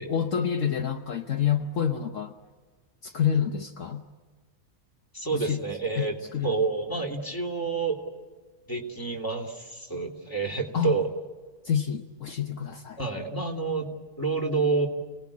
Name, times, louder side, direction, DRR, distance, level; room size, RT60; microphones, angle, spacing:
voice 1, 0.0-2.3 3.0-4.0 5.3-5.6 6.0-6.6 10.7-11.0 11.6-13.0, left 8 dB, 65° left, 6 dB, 1.4 m, -28 dB
voice 2, 5.1-6.2 6.4-8.0 8.7-11.1 13.0-14.9, right 4 dB, 15° left, 3 dB, 3.1 m, -28 dB
30.0 x 19.0 x 8.5 m, 1.5 s
omnidirectional pair, 1.5 m